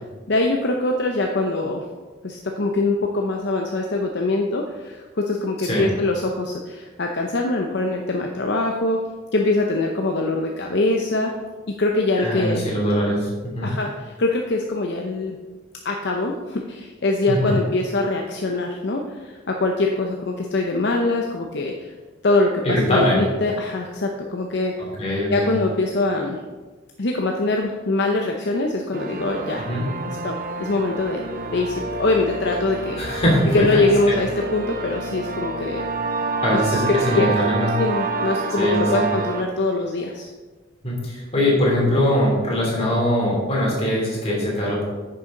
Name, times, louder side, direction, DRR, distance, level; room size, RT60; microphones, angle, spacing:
voice 1, 0.3-1.8 2.2-9.0 9.3-11.3 11.8-12.7 13.6-15.4 15.8-21.9 22.2-24.7 25.3-26.4 27.0-29.7 30.2-31.2 31.5-33.2 33.5-35.8 36.5-36.6 36.9-37.4 37.8-40.3, left 2 dB, 60° left, 2 dB, 0.7 m, -23 dB
voice 2, 12.2-13.7 17.3-17.6 22.6-23.3 25.0-25.5 29.6-29.9 33.0-33.7 34.1-34.2 36.4-37.7 38.6-39.1 40.8-44.8, equal, 30° left, -4 dB, 3.0 m, -22 dB
sound 1, 28.9-39.4, right 3 dB, 45° right, 0.7 m, -28 dB
9.7 x 6.8 x 3.8 m, 1.3 s
head